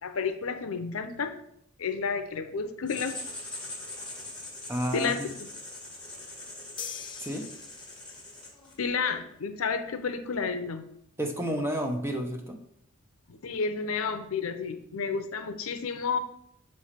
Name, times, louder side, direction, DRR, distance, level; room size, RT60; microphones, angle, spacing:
voice 1, 0.0-1.3 1.8-3.2 4.9-5.5 8.8-10.9 13.3-16.2, left 5 dB, 80° left, 9 dB, 0.6 m, -31 dB
Writing, 2.9-8.8, left 2 dB, 5° left, 1.7 m, -42 dB
voice 2, 4.7-5.3 7.2-7.5 11.2-12.6, equal, 10° right, 3 dB, 0.7 m, -31 dB
sound 1, 6.8-8.3, left 7 dB, 25° left, 0.3 m, -42 dB
6.9 x 3.2 x 5.7 m, 0.72 s
head